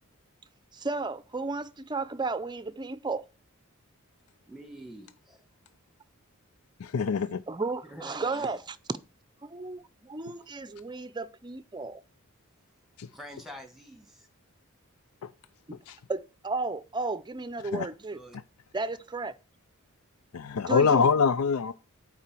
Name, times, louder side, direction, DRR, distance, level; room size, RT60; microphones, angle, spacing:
voice 1, 0.7-3.2 7.5-8.8 9.4-12.0 15.7-15.8 16.1-18.2 18.7-19.3 20.7-21.1, right 3 dB, 20° right, 0.6 m, -34 dB
voice 2, 4.5-5.4 7.8-8.6 13.1-14.3 18.1-18.4, equal, ahead, 1.9 m, -46 dB
voice 3, 6.8-7.4 13.0-13.1 15.2-15.3 15.9-16.0 17.7-17.9 20.3-21.7, left 5 dB, 80° left, 0.5 m, -24 dB
8.5 x 4.9 x 7.6 m
head